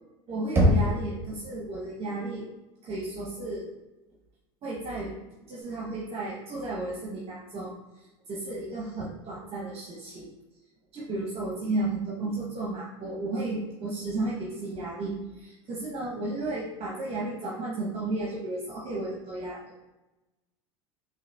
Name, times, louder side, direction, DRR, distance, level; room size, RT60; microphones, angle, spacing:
voice 1, 0.3-2.5 2.8-3.7 4.6-5.1 5.5-7.7 8.3-10.3 10.9-19.6, right 2 dB, 40° right, -3 dB, 0.8 m, -33 dB
Knock, 0.6-1.5, equal, 15° right, 1.0 m, -23 dB
4.6 x 2.7 x 2.2 m, 1.0 s
hypercardioid pair, 90°, 15 cm